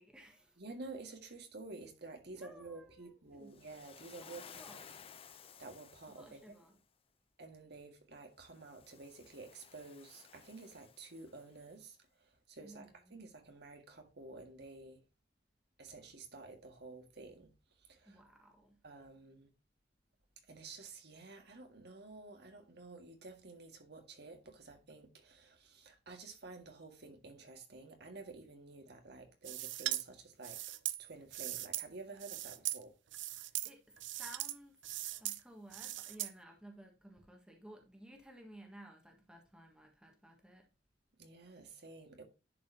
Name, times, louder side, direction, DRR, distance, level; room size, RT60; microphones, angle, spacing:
voice 1, 0.0-0.6 2.2-3.6 4.2-5.0 6.1-6.8 12.6-13.2 18.0-18.8 33.6-34.8 35.2-40.7, right 1 dB, 5° right, 1.5 m, -56 dB
voice 2, 0.6-4.4 4.7-5.0 5.6-6.5 7.4-15.0 15.8-18.2 18.8-19.5 20.4-30.6 31.0-32.9 41.2-42.2, right 3 dB, 65° right, 1.8 m, -51 dB
Waves surf, 3.5-6.7 8.5-11.6, left 7 dB, 30° left, 0.5 m, -57 dB
sound 1, 29.4-30.0 30.4-31.9 32.2-32.8 33.1-33.7 34.0-34.5 34.8-35.4 35.7-36.3, right 14 dB, 80° right, 0.6 m, -39 dB
10.5 x 4.9 x 2.7 m
head